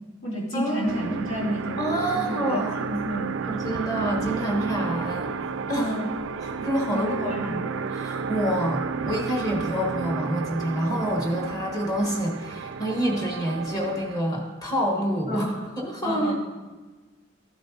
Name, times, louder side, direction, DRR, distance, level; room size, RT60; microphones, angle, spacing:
voice 1, 0.0-3.6 5.7-6.1 6.9-7.8 15.3-15.7 16.0-16.3, equal, 85° left, -5 dB, 2.6 m, -31 dB
voice 2, 0.5-1.1 1.8-2.7 3.5-5.3 5.7-5.9 6.4-7.6 8.0-15.5 15.8-16.3, right 1 dB, 20° left, 0 dB, 1.2 m, -27 dB
sound 1, 0.9-14.2, right 5 dB, 65° right, 0.3 m, -32 dB
12.5 x 7.7 x 2.8 m, 1.3 s
head